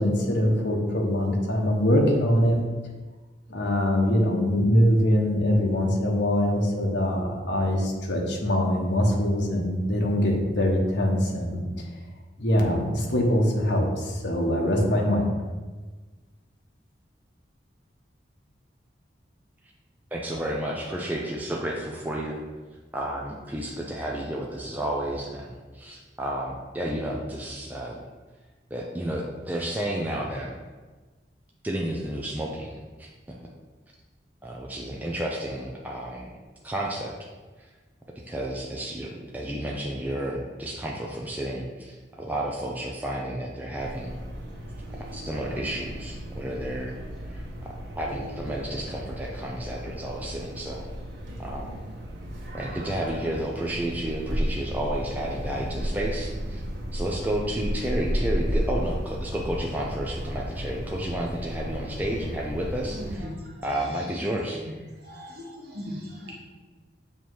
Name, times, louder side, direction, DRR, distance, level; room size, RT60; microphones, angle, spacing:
voice 1, 0.0-2.6 3.5-11.6 12.4-15.3, equal, 75° left, 0 dB, 1.1 m, -23 dB
voice 2, 20.1-22.4 22.9-28.0 28.7-30.5 31.6-33.1 34.4-36.3 36.6-37.1 38.3-44.2 45.1-46.9 47.3-47.4 48.0-50.8 51.4-51.7 52.5-56.6 56.9-63.3 63.6-64.6, right 1 dB, 10° right, -2 dB, 0.4 m, -31 dB
sound 1, 43.7-63.2, equal, 80° right, 1.3 m, -34 dB
voice 3, 62.9-63.5 64.2-64.3 65.0-66.3, equal, 55° right, -4 dB, 1.3 m, -38 dB
7.1 x 2.9 x 4.6 m, 1.3 s
head